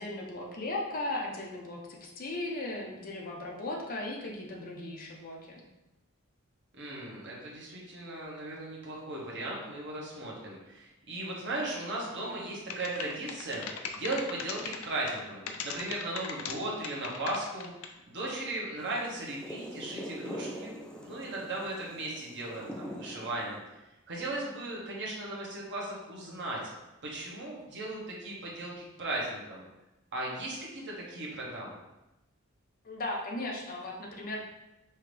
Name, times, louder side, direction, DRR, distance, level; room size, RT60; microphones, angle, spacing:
voice 1, 0.0-5.6 32.8-34.4, left 2 dB, 40° left, -1 dB, 0.8 m, -37 dB
voice 2, 6.8-13.7 13.9-17.7 18.1-23.6 24.1-26.6 27.0-28.7 29.0-29.6 30.1-31.8, right 2 dB, 55° right, -3 dB, 1.2 m, -37 dB
sound 1, 12.7-15.2 15.5-16.6 16.8-18.0, left 6 dB, 75° left, 0.5 m, -38 dB
sound 2, 18.8-23.7, equal, 5° left, 0.4 m, -43 dB
5.6 x 2.8 x 3.3 m, 0.97 s
head